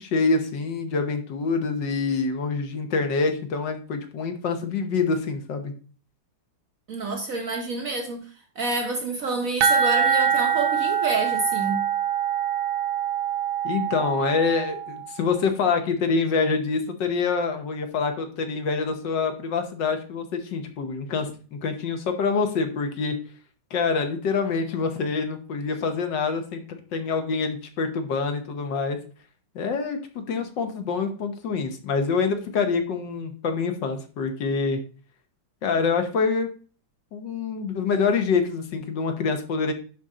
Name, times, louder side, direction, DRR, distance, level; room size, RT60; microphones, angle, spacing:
voice 1, 0.0-5.7 13.6-23.1 23.7-29.0 29.5-34.8 35.6-36.5 37.1-39.7, left 4 dB, 65° left, 1.6 m, -26 dB
voice 2, 6.9-8.3 8.6-11.9, right 3 dB, 55° right, 1.1 m, -28 dB
sound 1, 9.6-15.2, right 8 dB, 80° right, 1.6 m, -24 dB
10.5 x 4.2 x 3.7 m
omnidirectional pair, 2.2 m